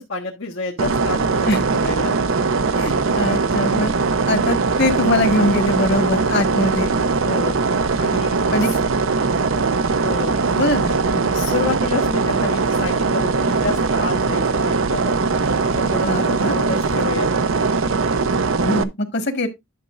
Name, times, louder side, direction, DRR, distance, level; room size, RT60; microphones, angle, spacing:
voice 1, 0.0-2.1 6.5-6.7 7.2-7.6 8.0-8.8 10.0-10.4 11.3-15.1 15.6-17.3, left 3 dB, 80° left, 1.4 m, -29 dB
sound 1, 0.8-18.8, right 4 dB, 85° right, 0.7 m, -20 dB
voice 2, 2.8-3.9 4.3-6.9 8.3-8.7 10.6-11.3 16.0-16.6 18.5-19.5, left 1 dB, 60° left, 1.7 m, -22 dB
11.0 x 6.5 x 2.5 m
head